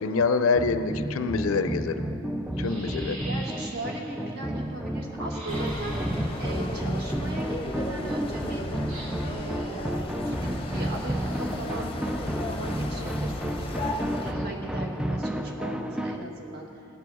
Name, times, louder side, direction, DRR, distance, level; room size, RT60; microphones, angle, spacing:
voice 1, 0.0-2.0 2.6-3.2, left 4 dB, 75° left, 9 dB, 0.5 m, -25 dB
sound 1, 0.6-16.2, right 1 dB, 5° right, 0.3 m, -32 dB
sound 2, 2.6-4.2 5.3-6.7 8.9-9.4 10.4-11.8 14.0-14.5, right 1 dB, 85° right, 2.2 m, -44 dB
voice 2, 3.2-6.1 6.4-8.6 9.2-11.9 12.2-16.9, right 1 dB, 45° right, 0 dB, 1.7 m, -38 dB
sound 3, 5.5-14.3, left 1 dB, 25° left, 0.7 m, -35 dB
18.5 x 6.9 x 6.1 m, 2.7 s
head